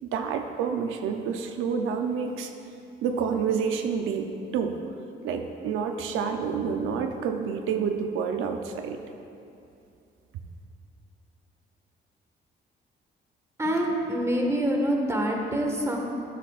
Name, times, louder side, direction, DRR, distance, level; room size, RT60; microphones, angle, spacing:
voice 1, 0.0-2.5 3.0-4.8 5.2-9.0, right 6 dB, 90° right, 5 dB, 0.6 m, -28 dB
voice 2, 13.6-16.0, equal, 15° right, 0 dB, 1.6 m, -26 dB
15.5 x 8.2 x 2.5 m, 2.6 s
cardioid pair, 90°, 20 cm